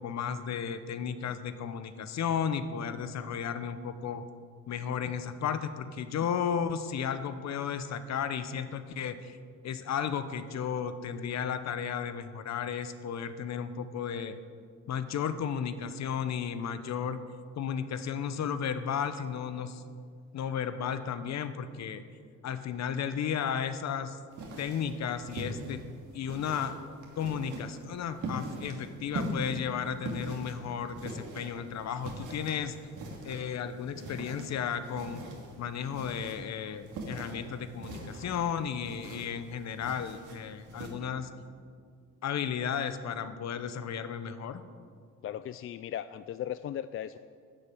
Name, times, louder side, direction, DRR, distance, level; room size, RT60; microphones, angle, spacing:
voice 1, 0.0-4.2 4.7-9.4 9.6-14.4 14.9-17.2 17.6-19.8 20.3-22.0 22.4-24.2 24.6-25.8 26.1-26.8 27.2-32.7 33.2-35.2 35.6-41.3 42.2-44.6, left 7 dB, 60° left, 11 dB, 0.9 m, -34 dB
sound 1, 24.3-40.9, right 2 dB, 80° right, 2.7 m, -42 dB
voice 2, 45.2-47.2, left 10 dB, 45° left, 13 dB, 0.4 m, -37 dB
11.5 x 6.9 x 9.3 m, 2.1 s
cardioid pair, 90°, 30 cm